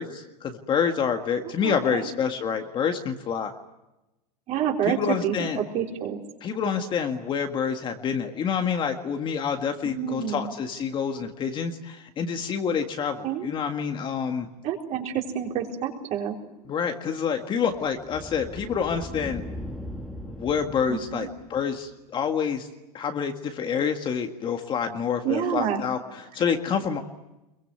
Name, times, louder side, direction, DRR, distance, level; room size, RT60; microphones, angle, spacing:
voice 1, 0.0-3.5 4.8-5.6 6.4-14.5 16.7-19.4 20.2-22.7 22.9-27.0, left 7 dB, 25° left, 5 dB, 1.8 m, -27 dB
voice 2, 1.6-2.1 4.5-6.2 9.8-10.5 13.2-13.5 14.6-16.4 20.9-21.3 25.2-25.8, right 9 dB, 35° right, 2 dB, 4.2 m, -28 dB
sound 1, 16.3-21.9, left 1 dB, ahead, 1.9 m, -40 dB
25.5 x 23.0 x 9.5 m, 0.97 s
supercardioid pair, 145°, 20 cm